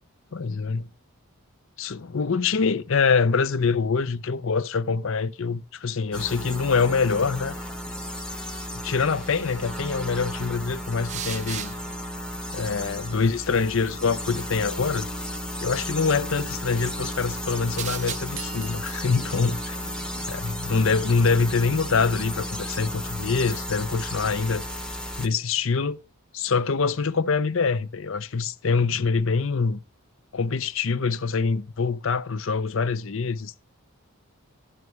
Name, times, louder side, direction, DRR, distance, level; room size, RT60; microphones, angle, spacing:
voice 1, 0.3-0.9 1.8-7.5 8.8-11.7 12.5-15.1 15.6-19.8 20.3-24.6 25.2-26.0 26.3-29.8 30.3-33.6, left 5 dB, 60° left, 0.6 m, -25 dB
sound 1, 6.1-25.3, equal, 5° left, 0.8 m, -34 dB
sound 2, 6.1-23.7, right 7 dB, 30° right, 0.4 m, -43 dB
sound 3, 18.4-20.9, right 10 dB, 75° right, 0.8 m, -45 dB
12.0 x 9.4 x 3.1 m
head